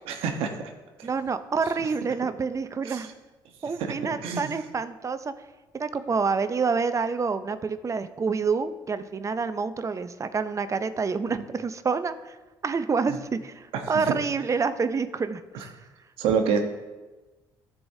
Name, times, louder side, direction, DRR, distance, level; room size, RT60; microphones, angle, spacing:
voice 1, 0.1-0.5 1.0-1.1 2.9-3.0 4.2-4.5 13.7-13.8 16.2-16.6, right 6 dB, 75° right, 4 dB, 1.1 m, -26 dB
voice 2, 1.0-3.1 3.6-5.3 5.7-12.4 12.6-15.7, right 5 dB, 30° right, 11 dB, 0.6 m, -28 dB
14.5 x 4.8 x 2.8 m, 1.2 s
supercardioid pair, 70°, 10 cm